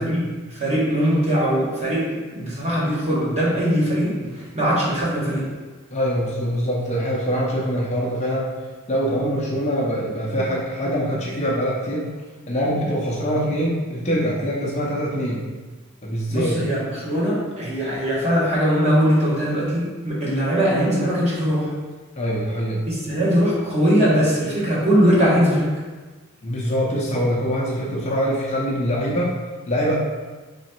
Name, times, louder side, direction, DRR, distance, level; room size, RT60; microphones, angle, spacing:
voice 1, 0.0-5.5 16.3-21.7 22.9-25.7, equal, 30° right, -7 dB, 1.2 m, -21 dB
voice 2, 5.9-8.5 8.9-12.1 12.5-15.4 16.0-16.6 22.2-22.8 26.4-29.4 29.7-29.9, equal, 30° left, -5 dB, 0.6 m, -24 dB
3.4 x 3.0 x 4.3 m, 1.3 s
head